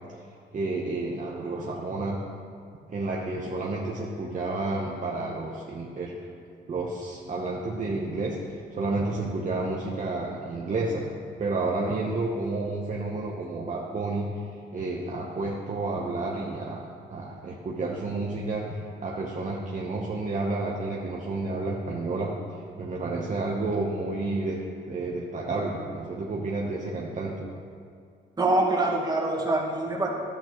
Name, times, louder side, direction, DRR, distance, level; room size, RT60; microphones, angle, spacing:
voice 1, 0.5-2.2 2.9-6.2 6.7-11.1 11.4-14.3 14.7-16.8 17.1-18.6 19.0-22.3 22.8-24.6 24.9-27.3, right 2 dB, 40° right, -3 dB, 1.0 m, -30 dB
voice 2, 28.4-30.1, right 2 dB, 20° right, -3 dB, 1.8 m, -24 dB
11.5 x 8.6 x 3.1 m, 2.3 s
cardioid pair, 90°, 20 cm